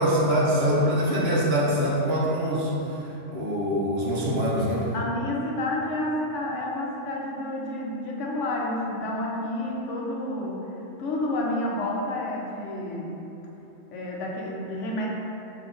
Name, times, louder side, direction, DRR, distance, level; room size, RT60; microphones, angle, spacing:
voice 1, 0.0-4.9, equal, 60° right, -5 dB, 0.8 m, -24 dB
voice 2, 4.9-10.6 11.0-13.2 13.9-15.1, left 1 dB, 80° left, -2 dB, 0.9 m, -30 dB
4.8 x 2.8 x 2.5 m, 3.0 s
omnidirectional pair, 1.3 m